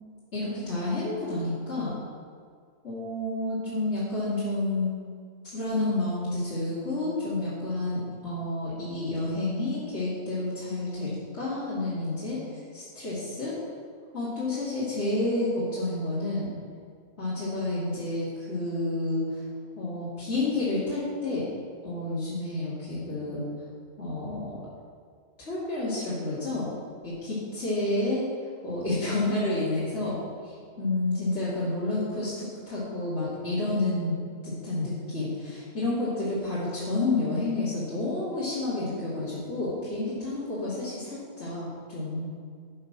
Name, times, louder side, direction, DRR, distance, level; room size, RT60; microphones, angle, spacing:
voice 1, 0.3-1.9 2.8-4.9 5.4-13.5 14.1-16.5 17.2-19.4 19.8-21.4 21.8-23.4 24.0-24.7 25.4-26.7 27.0-28.2 28.6-30.2 30.4-34.1 34.4-42.3, left 2 dB, 50° left, -11 dB, 3.1 m, -30 dB
12.0 x 6.5 x 6.2 m, 2.1 s
omnidirectional pair, 1.5 m